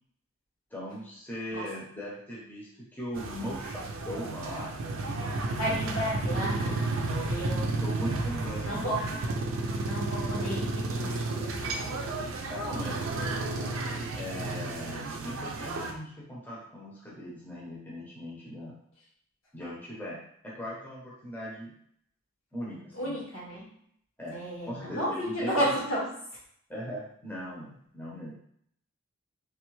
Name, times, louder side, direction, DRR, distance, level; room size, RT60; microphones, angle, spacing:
voice 1, 0.7-4.7 5.6-5.8 7.8-9.2 12.5-13.3 14.1-18.8 19.5-21.7 22.5-23.2 24.2-24.4 24.7-25.7 26.7-28.3, equal, 10° left, -6 dB, 0.7 m, -39 dB
sound 1, 3.1-15.9, right 2 dB, 70° right, 0.4 m, -32 dB
voice 2, 5.5-8.1 8.6-9.0 9.8-11.5 12.1-12.4 22.9-23.7 24.3-26.0, equal, 80° left, -6 dB, 1.5 m, -33 dB
3.4 x 2.2 x 3.1 m, 0.67 s
head